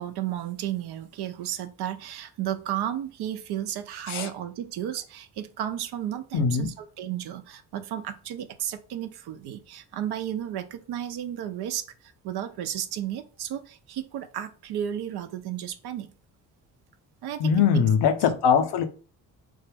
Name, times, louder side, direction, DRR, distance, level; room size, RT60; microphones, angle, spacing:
voice 1, 0.0-16.1 17.2-17.8, right 11 dB, 50° right, 0.6 m, -33 dB
voice 2, 6.3-6.7 17.4-18.8, left 7 dB, 55° left, 0.7 m, -21 dB
3.6 x 2.1 x 3.3 m
hypercardioid pair, 40°, 49 cm